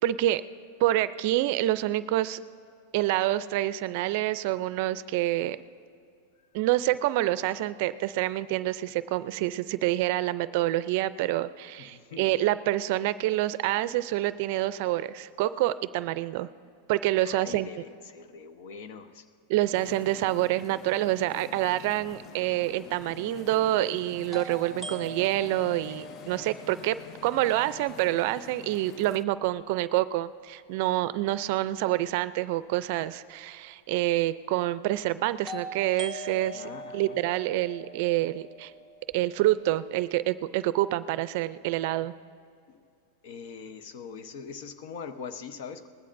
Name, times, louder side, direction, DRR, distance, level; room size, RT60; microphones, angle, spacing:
voice 1, 0.0-0.4 0.8-2.4 2.9-5.6 6.5-16.5 16.9-17.7 19.5-27.0 27.2-38.7 39.1-42.1, right 15 dB, 60° right, 15 dB, 0.4 m, -27 dB
voice 2, 11.8-12.4 17.2-19.3 36.3-37.2 42.7-42.8 43.2-45.9, left 6 dB, 65° left, 9 dB, 0.9 m, -42 dB
sound 1, 19.7-29.2, left 10 dB, 40° left, 0.4 m, -47 dB
sound 2, 22.4-22.5 24.3-28.2 35.5-39.5, right 1 dB, ahead, 1.2 m, -42 dB
20.0 x 15.0 x 2.6 m, 2.5 s
supercardioid pair, 130°, 0 cm